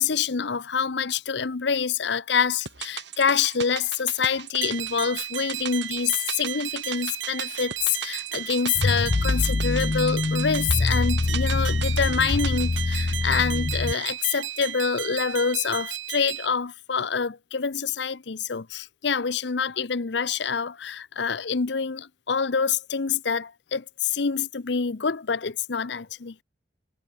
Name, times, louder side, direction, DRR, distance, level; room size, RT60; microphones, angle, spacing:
voice 1, 0.0-26.4, left 6 dB, 65° left, 0.7 m, -26 dB
sound 1, 2.7-15.0 15.3-15.4, right 8 dB, 65° right, 4.4 m, -39 dB
sound 2, 4.6-16.5, right 11 dB, 85° right, 2.7 m, -34 dB
sound 3, 8.7-13.9, left 3 dB, 30° left, 0.3 m, -25 dB
head